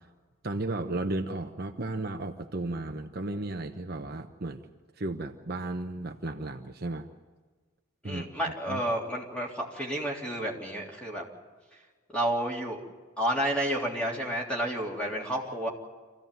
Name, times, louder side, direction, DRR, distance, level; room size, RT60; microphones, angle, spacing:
voice 1, 0.4-4.7 5.0-7.1 8.0-8.3 8.7-8.8, right 2 dB, 45° right, 5 dB, 1.0 m, -34 dB
voice 2, 8.0-11.3 12.1-12.8 13.2-15.7, right 1 dB, 5° left, -2 dB, 3.4 m, -30 dB
26.5 x 15.5 x 9.2 m, 1.4 s
head